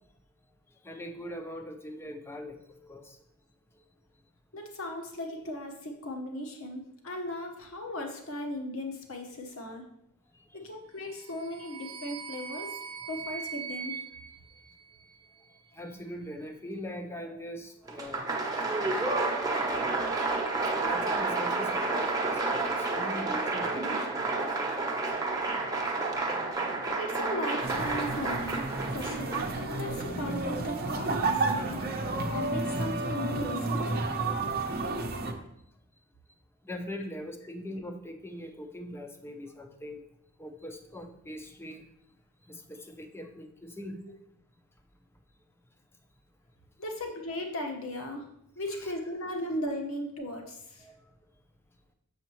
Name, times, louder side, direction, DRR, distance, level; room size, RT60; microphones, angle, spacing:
voice 1, 0.8-3.2 3.8-3.9 10.5-10.6 15.7-18.3 20.6-25.0 32.2-32.4 36.6-40.1 40.4-41.8 42.4-44.0 48.8-48.9 50.8-51.0, equal, 10° left, 6 dB, 0.6 m, -41 dB
voice 2, 4.5-9.8 10.5-12.7 13.1-14.0 27.0-28.7 28.9-31.8 32.3-34.0 46.8-48.3 48.5-50.9, left 1 dB, 70° left, 2 dB, 1.2 m, -37 dB
sound 1, 11.0-15.4, right 6 dB, 85° right, 0.6 m, -41 dB
Applause, 17.9-29.8, right 3 dB, 15° right, 0.9 m, -30 dB
sound 2, 27.6-35.3, right 3 dB, 45° right, 0.7 m, -31 dB
6.9 x 6.5 x 3.0 m, 0.77 s
head